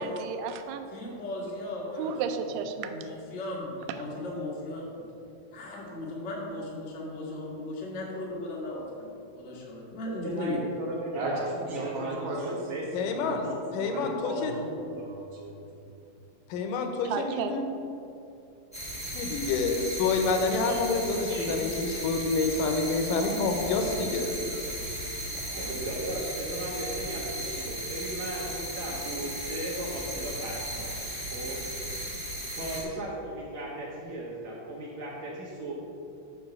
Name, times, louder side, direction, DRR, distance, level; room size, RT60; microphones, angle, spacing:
voice 1, 0.0-0.9 2.0-2.9 17.1-17.6, right 6 dB, 85° right, 7 dB, 2.2 m, -33 dB
voice 2, 0.9-2.1 2.6-5.0 5.5-9.1 9.4-10.6, left 1 dB, 60° left, -4 dB, 0.6 m, -36 dB
voice 3, 10.1-11.5 11.8-12.9 21.3-21.6 25.3-31.6 32.5-35.7, right 1 dB, 65° right, -5 dB, 2.0 m, -37 dB
voice 4, 11.1-15.9, right 1 dB, 50° right, -3 dB, 1.7 m, -35 dB
voice 5, 12.9-13.4 13.7-14.5 16.5-17.6 19.1-24.3 25.6-25.7, left 4 dB, 80° left, 4 dB, 2.3 m, -28 dB
sound 1, 18.7-32.8, right 1 dB, 10° left, 0.4 m, -36 dB
6.9 x 5.2 x 6.5 m, 2.7 s
omnidirectional pair, 3.9 m